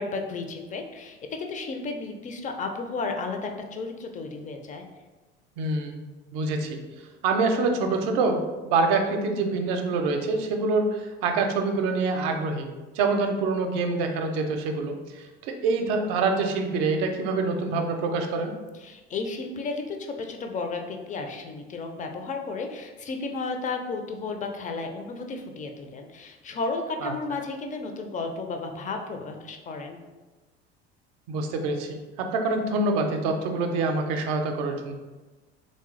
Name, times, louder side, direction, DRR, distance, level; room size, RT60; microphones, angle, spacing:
voice 1, 0.0-4.9 18.8-30.0, left 3 dB, 25° left, 4 dB, 0.4 m, -33 dB
voice 2, 5.6-6.0 6.3-6.8 7.2-8.4 8.7-12.7 12.9-18.5 27.0-27.1 31.3-34.9, right 3 dB, 55° right, 4 dB, 0.6 m, -26 dB
3.4 x 2.7 x 3.2 m, 1.2 s
figure-of-eight pair, 65°, 32 cm